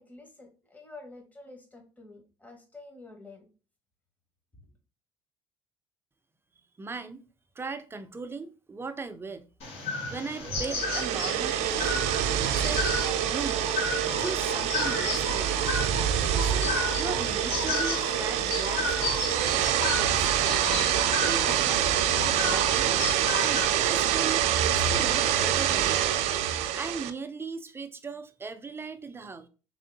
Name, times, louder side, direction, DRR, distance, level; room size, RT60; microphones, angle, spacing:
voice 1, 0.0-3.5, left 2 dB, 15° left, 1.3 m, -49 dB
voice 2, 6.8-7.2 7.6-9.5 10.1-12.1 12.4-12.9 13.3-15.6 16.3-20.8 21.2-21.9 22.2-23.0 23.4-26.0 26.7-29.5, right 4 dB, 20° right, 0.5 m, -38 dB
sound 1, 9.6-23.6, left 3 dB, 65° left, 2.2 m, -33 dB
sound 2, 10.6-27.1, right 10 dB, 70° right, 0.5 m, -26 dB
3.6 x 3.1 x 3.9 m
supercardioid pair, 95°, 12 cm